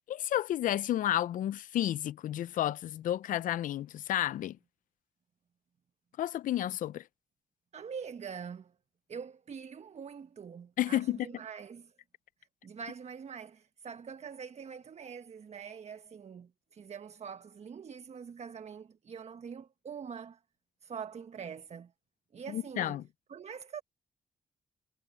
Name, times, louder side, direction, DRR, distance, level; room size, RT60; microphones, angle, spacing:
voice 1, 0.1-4.6 6.2-7.0 10.8-11.2 22.5-23.0, left 12 dB, 70° left, 0.7 m, -31 dB
voice 2, 7.7-8.7 9.1-11.9 12.6-20.4 20.8-21.9 22.3-23.0 23.3-23.8, right 6 dB, 50° right, 1.2 m, -44 dB
supercardioid pair, 50°, 14 cm